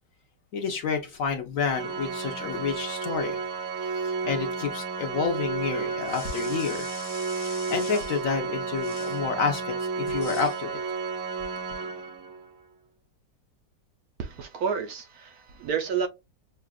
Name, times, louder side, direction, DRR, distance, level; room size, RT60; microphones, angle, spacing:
voice 1, 0.5-3.4 3.8-6.9 7.3-10.8, left 5 dB, 60° left, 1.0 m, -29 dB
Organ, 1.7-12.5, right 5 dB, 90° right, 1.6 m, -32 dB
sound 1, 6.0-8.3 8.8-9.3 10.1-10.6, left 3 dB, 40° left, 1.4 m, -43 dB
voice 2, 14.2-16.1, right 6 dB, 65° right, 1.0 m, -30 dB
6.6 x 2.4 x 2.3 m
omnidirectional pair, 1.9 m